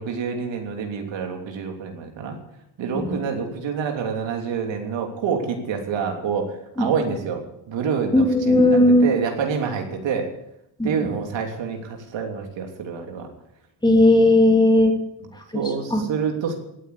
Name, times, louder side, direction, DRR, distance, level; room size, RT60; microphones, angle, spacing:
voice 1, 0.0-2.4 2.8-10.3 10.8-13.3 15.5-16.5, right 6 dB, 85° right, 3 dB, 3.2 m, -27 dB
voice 2, 2.9-3.3 6.8-6.9 8.1-9.1 10.8-11.1 13.8-14.9 15.3-15.6 15.9-16.0, left 1 dB, 10° left, 2 dB, 2.8 m, -17 dB
17.5 x 9.0 x 8.4 m, 0.81 s
cardioid pair, 145°, 44 cm